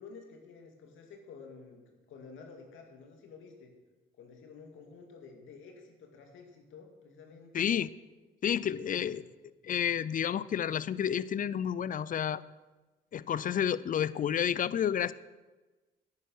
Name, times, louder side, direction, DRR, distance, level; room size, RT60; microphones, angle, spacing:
voice 1, 0.0-3.7 4.2-7.7 8.6-9.2, left 5 dB, 80° left, 3 dB, 2.1 m, -51 dB
voice 2, 7.5-7.9 8.4-9.2 9.6-12.4 13.1-15.1, left 9 dB, 45° left, 19 dB, 0.5 m, -30 dB
10.0 x 9.6 x 6.2 m, 1.2 s
cardioid pair, 90°, 20 cm